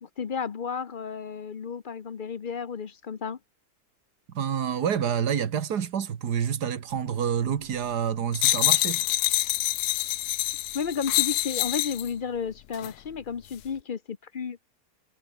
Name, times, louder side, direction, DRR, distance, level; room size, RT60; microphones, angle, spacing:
voice 1, 0.0-3.4 10.7-14.6, left 6 dB, 40° left, 0.8 m, -32 dB
voice 2, 4.3-9.0, right 8 dB, 85° right, 2.0 m, -28 dB
sound 1, 8.3-12.1 12.7-12.9, left 15 dB, 80° left, 1.1 m, -26 dB
omnidirectional pair, 1.7 m